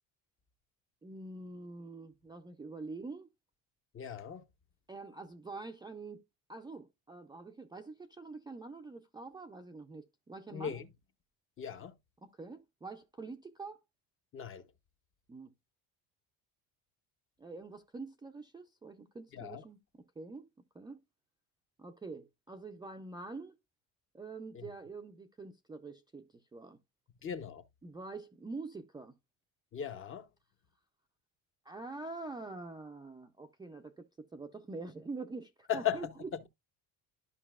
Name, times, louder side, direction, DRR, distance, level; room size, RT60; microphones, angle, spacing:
voice 1, 1.0-3.3 4.9-6.2 6.5-10.8 12.2-13.8 15.3-15.5 17.4-19.8 20.2-20.5 20.7-21.0 21.8-23.6 24.1-26.8 27.8-29.2 31.7-36.5, right 3 dB, 10° right, 0.3 m, -45 dB
voice 2, 3.9-4.4 10.5-10.9 11.6-11.9 14.3-14.6 19.3-19.6 24.5-24.7 27.2-27.6 29.7-30.3 35.7-36.5, left 9 dB, 35° left, 0.7 m, -37 dB
12.0 x 5.3 x 2.3 m
cardioid pair, 130°, 39 cm